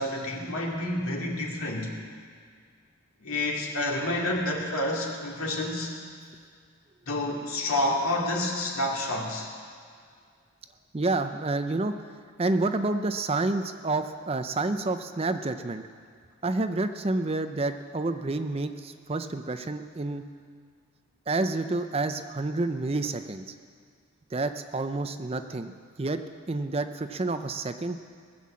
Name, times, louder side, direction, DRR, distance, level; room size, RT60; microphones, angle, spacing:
voice 1, 0.0-1.9 3.2-5.9 7.1-9.5, left 1 dB, 90° left, -1 dB, 2.4 m, -29 dB
voice 2, 10.9-12.0 12.4-15.8 16.4-20.2 21.3-23.4 24.3-25.7 26.0-26.2 26.5-28.0, right 2 dB, 25° right, 9 dB, 0.5 m, -29 dB
18.5 x 7.6 x 7.4 m, 2.1 s
head